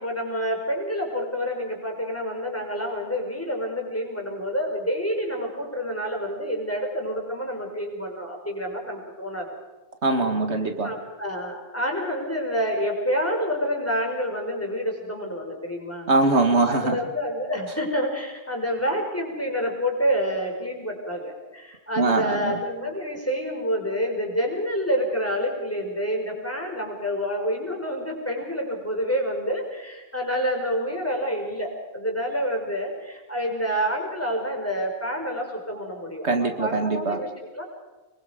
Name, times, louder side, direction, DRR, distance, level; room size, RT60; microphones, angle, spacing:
voice 1, 0.0-9.5 10.8-16.1 16.6-37.6, equal, 10° left, 5.3 m, -28 dB
voice 2, 10.0-10.9 16.1-17.0 22.0-22.5 36.2-37.2, right 3 dB, 75° right, 2.2 m, -22 dB
25.5 x 22.0 x 5.2 m
omnidirectional pair, 1.1 m